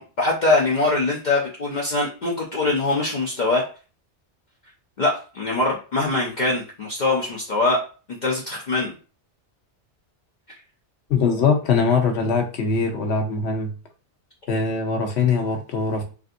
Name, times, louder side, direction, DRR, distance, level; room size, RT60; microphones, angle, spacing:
voice 1, 0.0-3.6 5.0-7.8 8.2-8.9, left 2 dB, 50° left, -3 dB, 0.7 m, -22 dB
voice 2, 11.1-13.7 14.5-16.0, left 5 dB, 70° left, 4 dB, 1.0 m, -22 dB
3.3 x 2.6 x 2.5 m, 0.36 s
omnidirectional pair, 1.2 m